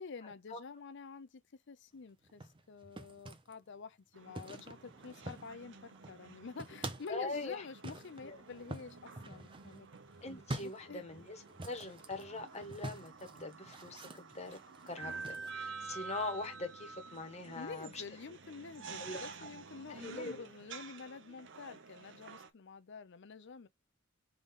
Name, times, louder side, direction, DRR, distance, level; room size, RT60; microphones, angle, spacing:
voice 1, 0.0-1.4 1.7-9.9 10.6-11.0 17.5-23.7, left 4 dB, 60° left, 0.6 m, -48 dB
sound 1, 2.2-3.5 4.4-5.7 5.9-7.2 7.8-15.5, right 2 dB, 25° right, 0.7 m, -47 dB
sound 2, 4.1-22.5, right 4 dB, 60° right, 0.7 m, -50 dB
voice 2, 7.1-7.6 8.2-8.4 10.2-14.6 14.9-18.0 19.0-19.2 19.9-20.4, left 3 dB, 35° left, 1.2 m, -42 dB
3.9 x 3.5 x 3.6 m
head